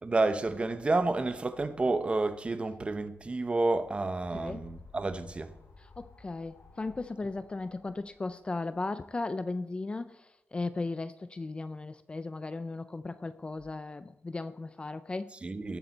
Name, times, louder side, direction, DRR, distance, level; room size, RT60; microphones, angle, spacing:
voice 1, 0.0-5.5 15.4-15.8, right 3 dB, 25° right, 0.8 m, -30 dB
sound 1, 3.9-9.3, left 4 dB, 75° left, 4.8 m, -55 dB
voice 2, 6.0-15.3, left 3 dB, 20° left, 0.4 m, -36 dB
19.0 x 8.8 x 4.1 m
wide cardioid pair, 175°, 5 cm